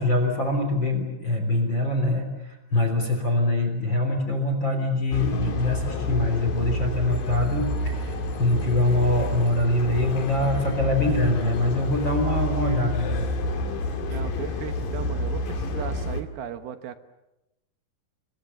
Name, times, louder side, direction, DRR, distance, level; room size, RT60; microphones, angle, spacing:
voice 1, 0.0-13.3 14.1-14.2, left 2 dB, 30° left, 4 dB, 3.7 m, -24 dB
sound 1, 5.1-16.2, left 1 dB, 55° left, 3.5 m, -29 dB
voice 2, 13.8-17.0, right 9 dB, 70° right, 9 dB, 2.8 m, -36 dB
29.5 x 23.5 x 7.0 m, 0.94 s
omnidirectional pair, 5.2 m